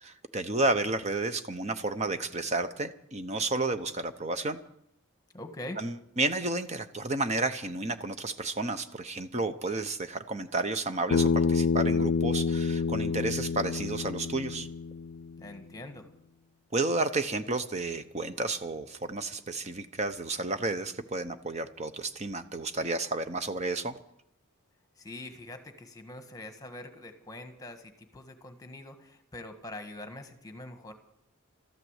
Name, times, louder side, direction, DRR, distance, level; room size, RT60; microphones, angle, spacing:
voice 1, 0.0-4.6 5.8-14.7 16.7-23.9, right 2 dB, 30° right, 10 dB, 0.9 m, -31 dB
voice 2, 5.3-5.8 15.4-16.1 25.0-30.9, left 1 dB, 15° left, 7 dB, 1.5 m, -44 dB
Bass guitar, 11.1-15.4, left 5 dB, 80° left, 0.5 m, -28 dB
13.5 x 12.0 x 8.1 m, 0.74 s
head